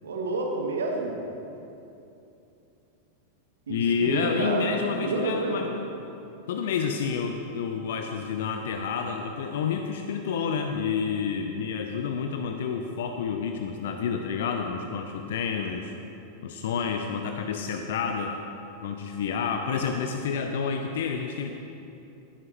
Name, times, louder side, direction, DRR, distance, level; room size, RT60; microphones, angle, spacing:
voice 1, 0.0-1.2 3.7-5.6, right 3 dB, 65° right, 1 dB, 1.4 m, -29 dB
voice 2, 3.7-5.8 6.5-15.9 16.4-18.3 18.8-21.5, left 6 dB, 55° left, 5 dB, 0.6 m, -29 dB
16.5 x 11.0 x 3.1 m, 2.8 s
figure-of-eight pair, 90°, 0 cm